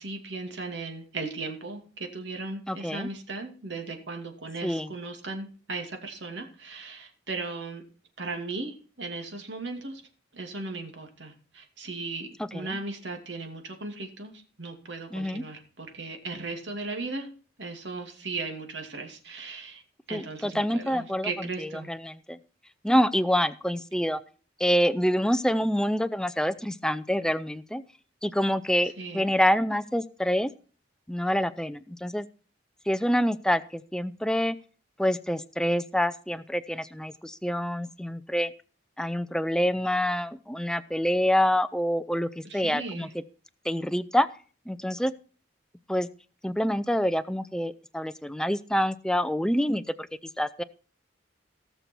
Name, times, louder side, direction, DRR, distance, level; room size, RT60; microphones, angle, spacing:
voice 1, 0.0-7.8 8.2-10.0 10.3-14.3 14.6-17.3 17.6-19.8 20.1-21.9 29.0-29.3 42.4-43.1, right 3 dB, 70° right, 4 dB, 2.5 m, -37 dB
voice 2, 2.7-3.1 4.6-4.9 12.4-12.8 15.1-15.4 20.1-22.4 22.8-24.2 24.6-27.8 28.2-30.5 31.1-32.3 32.9-34.6 35.0-38.5 39.0-43.1 43.6-44.3 44.7-45.1 45.9-46.1 46.4-49.8 50.4-50.6, equal, 5° left, 14 dB, 0.5 m, -26 dB
17.5 x 6.9 x 4.5 m, 0.40 s
head